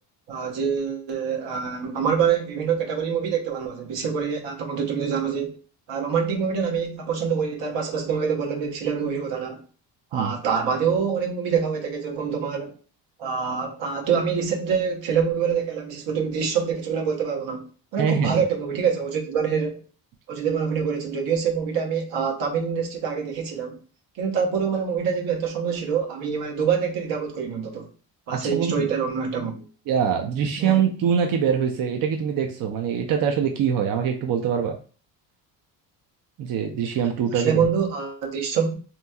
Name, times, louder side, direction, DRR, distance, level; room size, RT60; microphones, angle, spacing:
voice 1, 0.3-5.5 5.9-9.6 10.1-12.7 13.2-17.7 17.9-19.8 20.3-23.8 24.2-27.9 28.3-29.6 30.6-30.9 37.3-38.8, right 6 dB, 70° right, 0.9 m, -25 dB
voice 2, 18.0-18.4 28.4-28.9 29.9-34.8 36.4-37.6, right 7 dB, 50° right, 0.5 m, -23 dB
2.9 x 2.7 x 2.2 m
cardioid pair, 90°, 44 cm